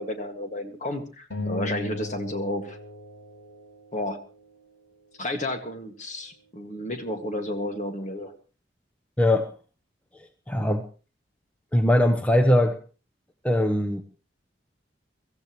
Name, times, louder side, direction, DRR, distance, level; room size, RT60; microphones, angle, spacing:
voice 1, 0.0-2.8 3.9-4.2 5.2-8.3, left 1 dB, 40° left, 5 dB, 1.9 m, -32 dB
sound 1, 1.3-3.9, left 2 dB, 80° left, 3.8 m, -36 dB
voice 2, 9.2-9.5 10.5-10.8 11.7-12.8 13.4-14.0, left 1 dB, 10° left, 6 dB, 0.8 m, -21 dB
23.5 x 15.0 x 3.1 m, 0.35 s
head